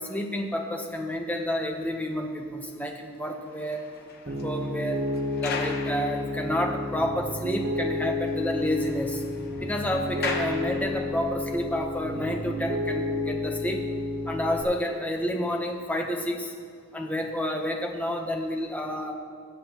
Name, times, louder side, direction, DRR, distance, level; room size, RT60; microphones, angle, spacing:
voice 1, 0.0-3.8 4.2-5.0 5.4-9.2 9.6-13.8 14.2-16.5 16.9-19.1, left 1 dB, 5° left, 2 dB, 0.8 m, -30 dB
sound 1, 3.3-7.0 7.3-7.4 7.8-7.9 8.1-11.4 12.1-12.3, left 4 dB, 45° left, 0.9 m, -39 dB
Piano, 4.3-14.6, left 2 dB, 50° right, 0.9 m, -31 dB
21.5 x 7.5 x 2.9 m, 2.3 s
head